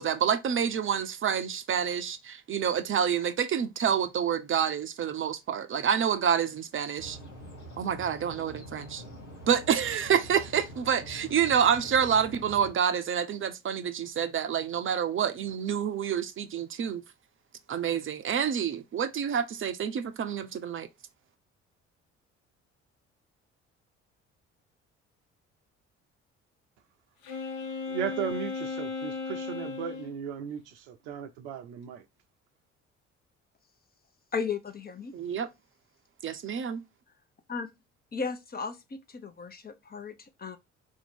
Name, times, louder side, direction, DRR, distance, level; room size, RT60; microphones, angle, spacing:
voice 1, 0.0-7.2 7.8-9.0 9.5-17.0 17.7-20.9 35.1-35.5 36.2-36.8, right 8 dB, 35° right, 0.7 m, -28 dB
sound 1, 7.0-12.7, equal, 90° left, 1.0 m, -45 dB
Wind instrument woodwind instrument, 27.2-30.1, left 4 dB, 65° left, 0.9 m, -35 dB
voice 2, 27.9-32.0, right 8 dB, 70° right, 0.7 m, -36 dB
voice 3, 34.3-35.1 37.5-37.7 38.1-40.6, left 5 dB, 25° left, 0.8 m, -35 dB
4.3 x 2.7 x 4.3 m
figure-of-eight pair, 50°, 35 cm